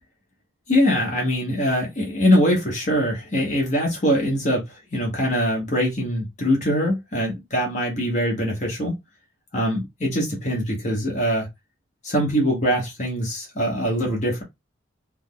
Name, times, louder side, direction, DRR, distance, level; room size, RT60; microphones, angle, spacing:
voice 1, 0.7-8.9 9.5-11.5 12.0-14.4, equal, 35° left, 1.0 m, -23 dB
3.5 x 2.0 x 3.6 m
head